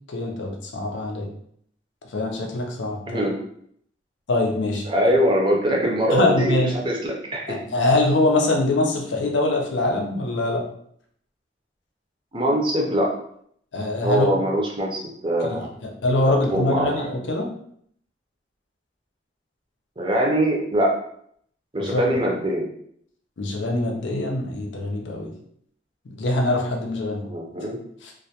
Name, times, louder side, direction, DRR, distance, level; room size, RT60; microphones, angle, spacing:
voice 1, 0.1-1.3 2.1-3.3 4.3-4.8 6.1-6.7 7.5-10.6 13.7-14.3 15.5-17.5 21.8-22.1 23.4-25.3 26.2-27.2 28.0-28.1, left 2 dB, 80° left, 1 dB, 0.5 m, -23 dB
voice 2, 4.9-7.6 12.3-13.1 14.0-15.7 16.5-17.1 20.0-20.9 21.7-22.7 27.2-27.8, equal, 25° right, -2 dB, 0.4 m, -22 dB
2.2 x 2.1 x 2.7 m, 0.67 s
head